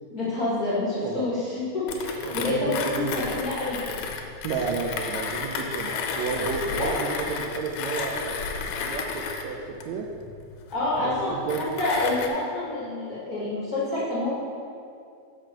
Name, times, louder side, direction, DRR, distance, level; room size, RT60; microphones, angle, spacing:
voice 1, 0.1-3.8 6.8-6.9 10.7-11.3 11.6-14.3, left 2 dB, 40° left, -9 dB, 1.3 m, -28 dB
Mechanisms, 1.9-12.3, left 5 dB, 90° left, 2.4 m, -32 dB
voice 2, 2.2-3.4 4.4-9.6 9.8-10.1 11.0-11.6, right 5 dB, 80° right, -1 dB, 1.6 m, -32 dB
7.4 x 5.0 x 6.5 m, 2.4 s
omnidirectional pair, 3.8 m